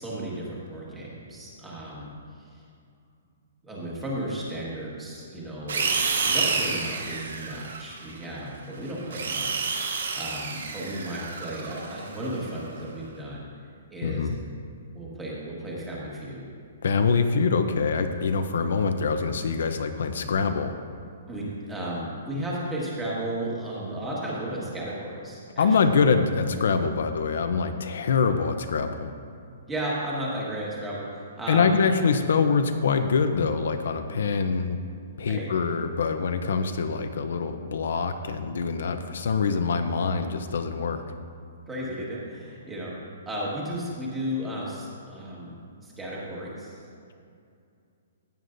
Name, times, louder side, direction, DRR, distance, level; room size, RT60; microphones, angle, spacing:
voice 1, 0.0-2.5 3.6-13.4 13.9-14.3 14.9-16.5 21.3-25.7 29.7-31.8 35.3-35.5 41.7-42.9 43.2-46.8, right 1 dB, 5° right, -6 dB, 1.7 m, -34 dB
sound 1, 5.7-8.2 8.9-12.6, right 4 dB, 85° right, 1.4 m, -29 dB
voice 2, 14.0-14.4 16.8-20.7 25.6-29.1 31.5-34.8 35.2-41.0, left 5 dB, 65° left, 7 dB, 0.6 m, -24 dB
16.0 x 9.3 x 2.6 m, 2.4 s
hypercardioid pair, 175°, 0 cm